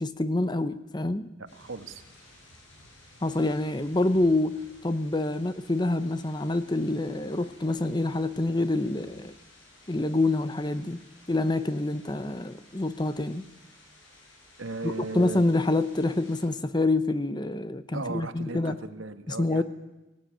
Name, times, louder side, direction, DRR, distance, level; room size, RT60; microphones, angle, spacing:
voice 1, 0.0-1.3 3.2-9.3 9.9-11.0 11.3-13.4 14.8-18.8 19.3-19.6, left 2 dB, 20° left, 0.8 m, -27 dB
voice 2, 1.4-2.0 14.6-15.4 17.9-19.6, right 3 dB, 90° right, 1.6 m, -37 dB
sound 1, 1.5-16.5, left 1 dB, 80° left, 7.3 m, -55 dB
19.0 x 17.5 x 9.0 m
head